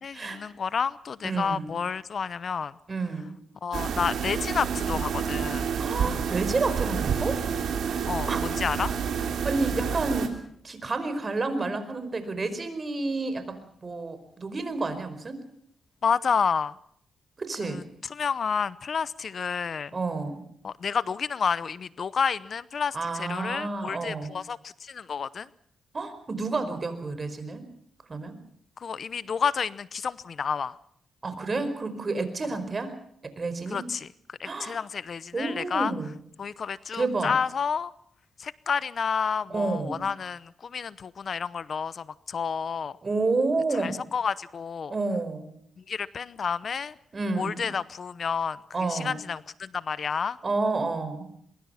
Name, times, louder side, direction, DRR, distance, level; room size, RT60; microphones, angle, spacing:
voice 1, 0.0-2.7 3.6-5.7 8.1-8.9 16.0-16.7 17.6-17.8 18.1-19.9 20.6-25.5 28.8-30.8 33.7-35.9 36.4-37.9 38.4-42.9 43.7-44.9 45.9-46.9 47.4-50.4, left 6 dB, 60° left, 18 dB, 0.8 m, -30 dB
voice 2, 1.2-1.8 2.9-3.3 5.8-7.4 8.3-8.4 9.4-10.4 10.6-13.6 13.8-15.4 17.4-17.8 19.9-20.4 22.9-24.3 25.9-27.6 28.1-28.3 31.2-32.9 33.2-33.8 34.4-34.8 35.3-36.1 36.9-37.4 39.5-40.0 43.0-44.0 44.9-45.5 47.1-47.7 48.7-49.2 50.4-51.2, right 3 dB, 40° right, 10 dB, 4.9 m, -30 dB
sound 1, 3.7-10.3, right 7 dB, 80° right, 3.2 m, -29 dB
23.5 x 22.5 x 5.8 m, 0.66 s
cardioid pair, 75°, 0 cm